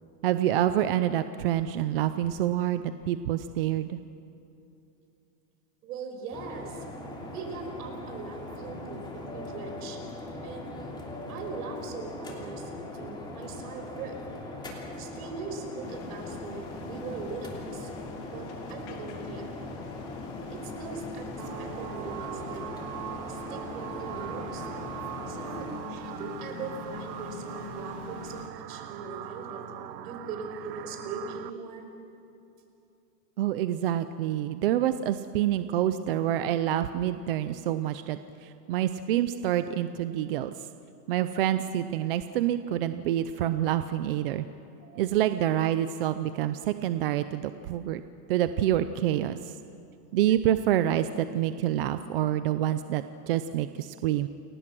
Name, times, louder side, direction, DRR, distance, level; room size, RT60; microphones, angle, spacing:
voice 1, 0.2-4.0 33.4-40.5 41.1-44.5 45.0-48.0 48.3-49.5 50.1-54.3, right 12 dB, 35° right, 11 dB, 0.6 m, -27 dB
voice 2, 5.8-6.8 7.3-10.0 10.4-10.7 11.3-14.2 15.0-17.9 18.3-19.5 20.5-22.6 23.3-24.7 25.3-29.6 30.0-31.9 44.8-45.0, right 4 dB, 65° right, 4 dB, 5.8 m, -40 dB
sound 1, 6.3-25.8, left 2 dB, 10° left, 2.9 m, -40 dB
sound 2, 15.8-28.5, left 6 dB, 45° left, 2.9 m, -45 dB
sound 3, 21.4-31.5, right 12 dB, 90° right, 1.4 m, -41 dB
29.5 x 23.5 x 6.1 m, 2.8 s
supercardioid pair, 170°, 48 cm